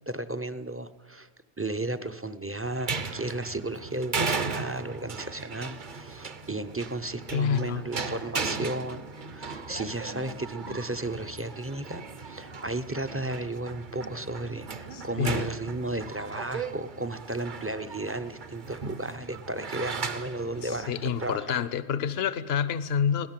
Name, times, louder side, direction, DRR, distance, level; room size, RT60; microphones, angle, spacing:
voice 1, 0.1-1.3 1.6-20.9 21.2-21.7, right 2 dB, 15° right, 11 dB, 0.5 m, -34 dB
sound 1, 2.6-21.4, right 4 dB, 50° right, 1.0 m, -37 dB
voice 2, 7.3-7.8 14.9-15.5 20.6-23.3, left 7 dB, 70° left, 15 dB, 1.0 m, -28 dB
21.5 x 17.0 x 7.5 m, 1.3 s
omnidirectional pair, 1.1 m